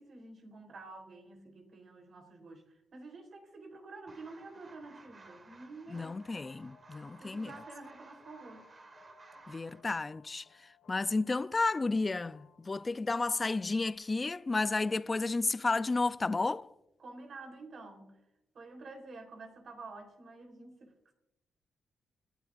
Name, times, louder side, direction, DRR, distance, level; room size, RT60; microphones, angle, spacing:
voice 1, 0.0-6.1 7.2-8.7 17.0-18.2 18.5-20.9, right 3 dB, 55° right, 3.8 m, -49 dB
sound 1, 4.1-9.8, right 3 dB, 35° right, 1.6 m, -56 dB
voice 2, 5.9-7.5 9.5-10.4 10.9-16.7, left 3 dB, 25° left, 0.4 m, -32 dB
sound 2, 6.1-14.0, left 5 dB, 75° left, 2.8 m, -64 dB
30.0 x 11.0 x 2.6 m
cardioid pair, 105°, 0 cm